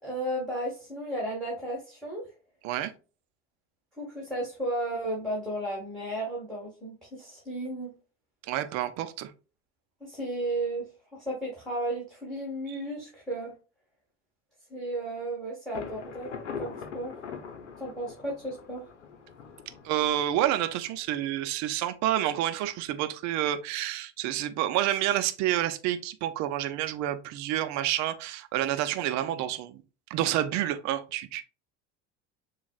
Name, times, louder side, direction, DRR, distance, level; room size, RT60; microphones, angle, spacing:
voice 1, 0.0-2.2 4.0-7.9 10.0-10.9 11.1-13.5 14.7-17.2 17.8-18.8, right 1 dB, ahead, 2.0 m, -34 dB
voice 2, 8.5-9.3 12.7-12.8 19.8-29.8 30.1-31.4, right 12 dB, 50° right, 0.7 m, -29 dB
Thunder, 15.7-21.4, left 6 dB, 85° left, 0.8 m, -42 dB
7.0 x 2.4 x 2.4 m
hypercardioid pair, 75°, 35 cm